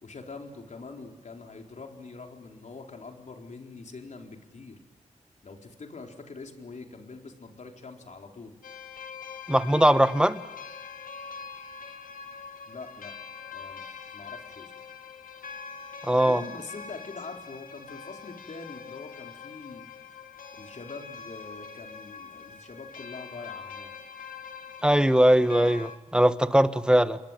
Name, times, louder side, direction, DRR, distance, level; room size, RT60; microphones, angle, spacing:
voice 1, 0.0-4.8 5.4-8.6 12.7-13.1 13.5-14.7 16.1-19.9 20.5-23.9, left 4 dB, 60° left, 3 dB, 4.2 m, -44 dB
sound 1, 8.6-26.0, left 6 dB, 80° left, 2.0 m, -43 dB
voice 2, 9.5-10.4 16.0-16.4 24.8-27.2, right 1 dB, 5° right, 11 dB, 1.5 m, -20 dB
30.0 x 21.0 x 9.0 m, 1.1 s
cardioid pair, 60°, 14 cm